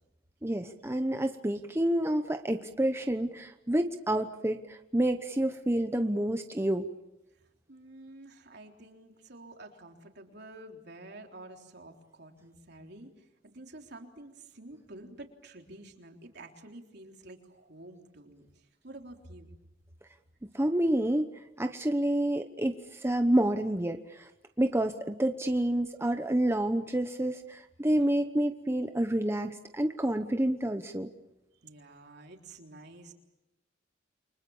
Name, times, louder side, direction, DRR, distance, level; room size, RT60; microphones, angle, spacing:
voice 1, 0.4-6.9 20.5-21.2 21.6-24.3 24.6-31.1, right 1 dB, 15° right, 6 dB, 1.0 m, -28 dB
voice 2, 7.7-19.5 28.0-28.1 31.6-33.1, right 2 dB, 60° right, 3 dB, 3.6 m, -49 dB
29.5 x 24.5 x 7.2 m, 0.95 s
head